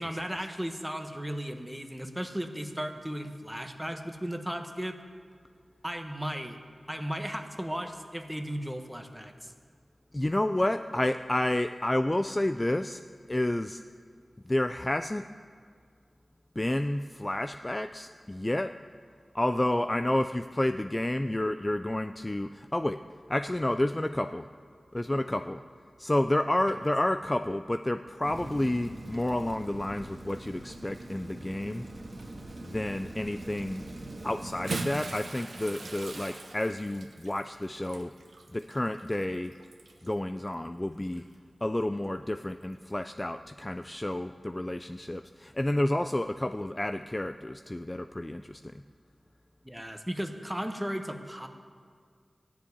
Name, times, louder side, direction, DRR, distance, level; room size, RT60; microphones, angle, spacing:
voice 1, 0.0-5.0 5.8-6.6 6.9-9.5 49.6-51.5, equal, 5° right, 5 dB, 1.3 m, -35 dB
voice 2, 10.1-13.0 13.3-13.8 14.5-15.2 16.6-18.7 19.3-23.0 23.3-24.5 24.9-25.6 26.0-31.9 32.6-33.8 34.2-38.1 38.5-39.5 40.0-41.2 41.6-48.7, left 1 dB, 20° left, 9 dB, 0.4 m, -30 dB
Rain, 28.2-34.9, right 1 dB, 55° right, 1.7 m, -43 dB
Bathtub (filling or washing) / Splash splatter, 34.5-40.1 41.0-41.2 42.6-42.7, right 3 dB, 75° right, 1.1 m, -41 dB
15.5 x 7.1 x 9.7 m, 2.1 s
wide cardioid pair, 70°, 0 cm